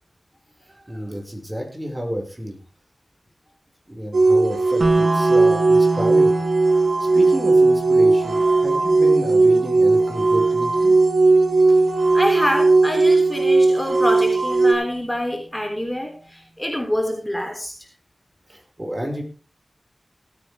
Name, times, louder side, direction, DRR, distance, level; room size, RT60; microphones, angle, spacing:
voice 1, 0.7-2.6 3.9-6.3 7.0-10.9 18.5-19.2, equal, 25° right, 2 dB, 5.5 m, -30 dB
sound 1, 4.1-14.7, right 3 dB, 85° right, 3.1 m, -17 dB
sound 2, 4.8-14.8, right 2 dB, 55° right, 1.8 m, -30 dB
voice 2, 12.1-17.8, left 1 dB, 10° left, 2 dB, 3.4 m, -26 dB
18.0 x 9.5 x 3.5 m, 0.34 s
cardioid pair, 45°, 0 cm